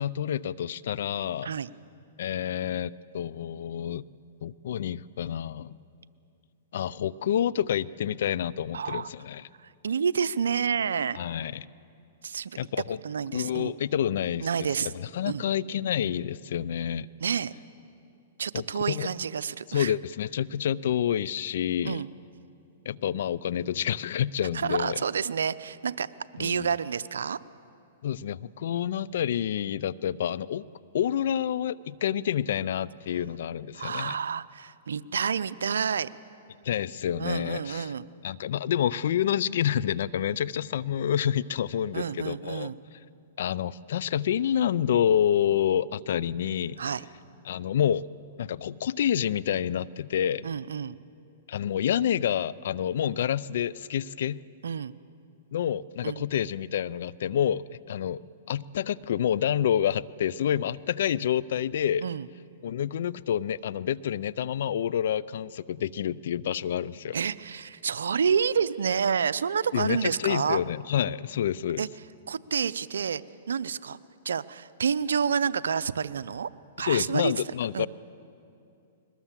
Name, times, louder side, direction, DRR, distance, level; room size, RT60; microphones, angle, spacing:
voice 1, 0.0-1.5 2.2-4.0 4.4-5.7 6.7-9.5 11.2-11.7 12.6-13.0 13.3-14.5 14.8-17.1 18.5-19.1 19.7-22.0 22.9-25.0 26.4-26.7 28.0-30.6 30.9-34.2 36.6-37.9 38.2-42.7 43.4-46.8 47.4-48.1 48.4-50.5 51.5-54.4 55.5-62.1 62.6-67.2 69.7-71.8 76.8-77.9, left 9 dB, 70° left, 19 dB, 0.5 m, -28 dB
voice 2, 8.7-9.1 9.6-11.2 12.2-12.6 13.0-13.7 14.4-14.9 15.3-15.4 17.2-17.5 18.4-19.9 21.8-22.1 24.5-27.4 33.7-36.1 37.2-38.0 41.9-42.8 46.8-47.0 50.4-51.0 54.6-54.9 56.0-56.2 62.0-62.3 67.1-70.6 71.8-71.9 72.3-73.2 73.5-74.0 74.2-76.5 76.8-77.3 77.7-77.9, right 6 dB, 85° right, 15 dB, 0.6 m, -29 dB
22.0 x 20.0 x 7.4 m, 2.6 s
hypercardioid pair, 135°, 0 cm